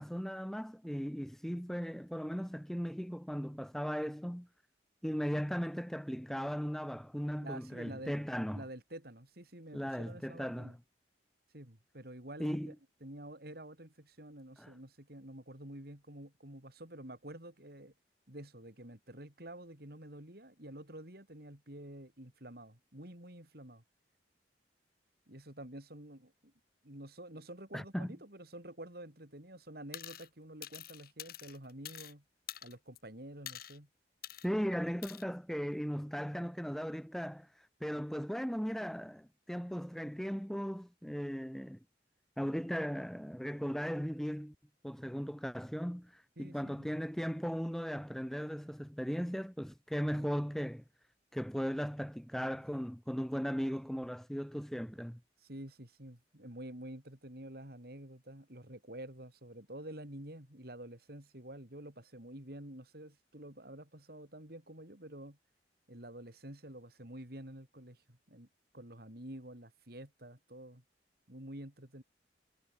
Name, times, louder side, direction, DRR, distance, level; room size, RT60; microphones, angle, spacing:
voice 1, 0.0-4.5 5.0-8.6 9.7-10.8 12.4-12.7 14.6-14.7 27.7-28.2 34.4-41.8 42.4-44.5 44.8-50.8 51.3-55.2, equal, ahead, 1.9 m, -37 dB
voice 2, 7.4-8.1 8.5-10.7 11.5-12.7 13.0-17.9 18.3-23.8 25.3-26.5 26.8-32.2 32.6-33.9 46.4-47.0 52.4-52.6 55.4-65.4 65.9-68.5 68.7-70.8 71.3-72.0, right 1 dB, 60° right, 4.4 m, -49 dB
sound 1, 29.9-30.3 30.6-32.1 32.5-33.0 33.5-33.8 34.2-34.5 35.0-35.2, left 12 dB, 55° left, 4.9 m, -46 dB
head